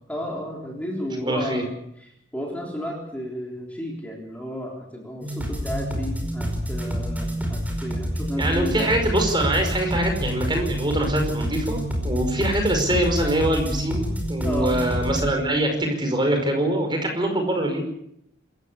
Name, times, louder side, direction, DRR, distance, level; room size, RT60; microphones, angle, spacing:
voice 1, 0.1-1.6 2.0-8.9 14.4-14.7, equal, 5° left, -1 dB, 3.7 m, -33 dB
voice 2, 1.2-1.7 8.4-17.8, right 1 dB, 25° right, 4 dB, 5.2 m, -23 dB
sound 1, 5.2-15.2, equal, 10° right, 5.1 m, -28 dB
26.5 x 14.5 x 8.3 m, 0.75 s
head